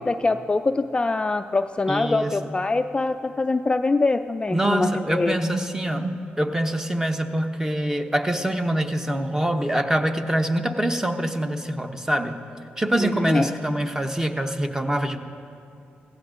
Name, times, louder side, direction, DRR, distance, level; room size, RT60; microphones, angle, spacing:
voice 1, 0.0-5.4 13.0-13.5, left 3 dB, 25° left, 8 dB, 0.3 m, -24 dB
voice 2, 1.9-2.5 4.5-12.4 12.8-15.2, right 1 dB, 10° right, 6 dB, 0.9 m, -25 dB
16.0 x 15.5 x 2.5 m, 2.5 s
supercardioid pair, 60°, 4 cm